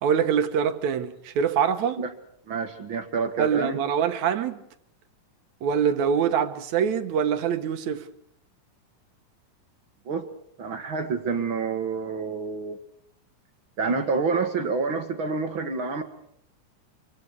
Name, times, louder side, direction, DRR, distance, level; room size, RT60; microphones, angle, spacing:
voice 1, 0.0-2.0 3.4-4.6 5.6-8.0, right 7 dB, 65° right, 2.3 m, -24 dB
voice 2, 2.5-3.8 10.1-10.3 10.6-12.8 13.8-16.0, right 4 dB, 45° right, 1.9 m, -28 dB
27.0 x 24.5 x 4.7 m
omnidirectional pair, 3.8 m